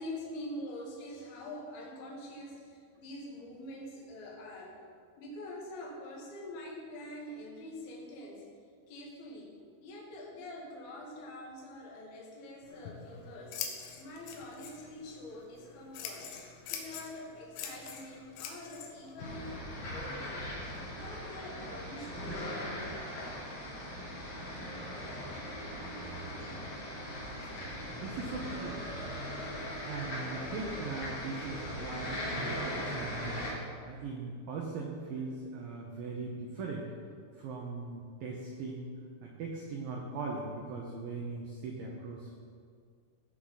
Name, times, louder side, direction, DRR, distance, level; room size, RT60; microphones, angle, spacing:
voice 1, 0.0-4.7 5.2-8.4 8.9-9.5 9.8-13.6 14.0-16.3 16.7-19.6 19.8-20.4 20.8-22.3, left 1 dB, 60° left, -4 dB, 3.4 m, -45 dB
Scissors, 12.6-20.8, left 7 dB, 90° left, 3.6 m, -45 dB
sound 1, 19.2-33.5, equal, 40° left, 2.8 m, -39 dB
voice 2, 27.9-28.8 29.8-36.9 37.4-38.9 39.2-42.4, right 3 dB, 90° right, -1 dB, 2.0 m, -40 dB
17.0 x 6.2 x 4.1 m, 2.1 s
omnidirectional pair, 5.5 m